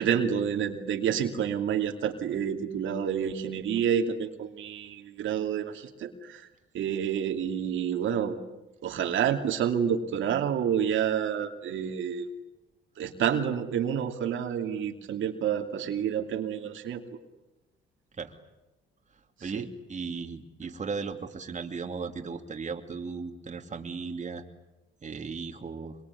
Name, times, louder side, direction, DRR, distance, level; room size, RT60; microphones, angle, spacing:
voice 1, 0.0-6.5 6.7-8.4 8.8-12.3 13.0-17.0 19.4-19.7, right 8 dB, 75° right, 4 dB, 2.6 m, -29 dB
voice 2, 19.4-24.4 25.0-26.0, right 5 dB, 35° right, 4 dB, 2.7 m, -36 dB
25.5 x 23.5 x 9.8 m, 1.0 s
cardioid pair, 90°, 20 cm